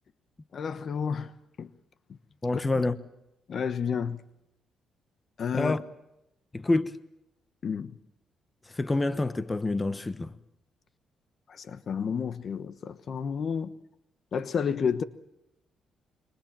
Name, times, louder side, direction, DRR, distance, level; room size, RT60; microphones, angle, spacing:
voice 1, 0.5-1.3 1.6-1.7 2.5-2.8 3.5-4.3 5.4-5.7 7.6-8.0 11.5-13.7 14.3-15.0, left 6 dB, 55° left, 1.2 m, -31 dB
voice 2, 2.4-3.0 5.5-5.8 6.5-7.0 8.7-10.3, left 2 dB, 20° left, 1.1 m, -27 dB
27.0 x 24.0 x 7.5 m
cardioid pair, 90°, 0 cm